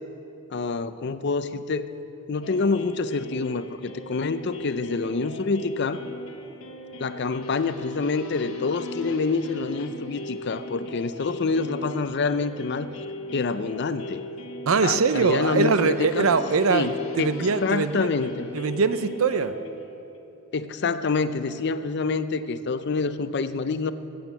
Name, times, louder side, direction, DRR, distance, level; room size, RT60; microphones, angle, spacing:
voice 1, 0.5-1.9 2.3-6.0 7.0-12.9 13.3-14.2 14.8-16.3 16.7-16.9 17.2-17.3 17.6-18.5 20.5-23.9, left 4 dB, 55° left, 12 dB, 0.5 m, -27 dB
sound 1, 2.4-20.2, left 1 dB, 85° left, 1.1 m, -39 dB
voice 2, 14.7-16.9 17.2-18.1 18.5-19.5, right 4 dB, 90° right, 12 dB, 0.6 m, -22 dB
15.0 x 8.6 x 7.1 m, 2.9 s
head